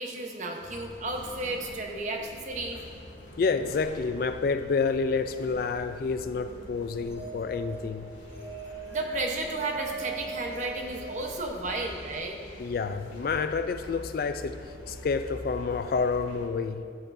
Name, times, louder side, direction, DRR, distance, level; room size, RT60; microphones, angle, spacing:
voice 1, 0.0-2.8 8.9-12.4, right 2 dB, 40° right, 1 dB, 0.9 m, -33 dB
sound 1, 0.6-16.5, equal, 80° left, 2.0 m, -45 dB
voice 2, 3.4-8.1 12.6-16.8, left 4 dB, 50° left, 10 dB, 0.3 m, -29 dB
sound 2, 6.8-11.7, right 5 dB, 75° right, 1.1 m, -41 dB
13.5 x 8.5 x 2.6 m, 2.2 s
head